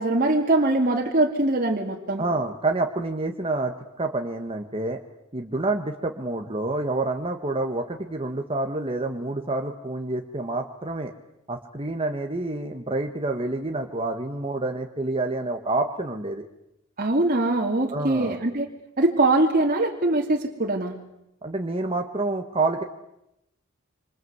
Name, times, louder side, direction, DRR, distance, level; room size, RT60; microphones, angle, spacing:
voice 1, 0.0-2.2 17.0-18.7 19.0-20.9, right 2 dB, 45° right, 0 dB, 2.8 m, -22 dB
voice 2, 2.2-5.0 5.3-11.1 11.5-16.5 17.9-18.4 21.4-22.8, right 2 dB, 25° right, 4 dB, 1.7 m, -28 dB
27.0 x 26.5 x 8.2 m, 0.86 s
head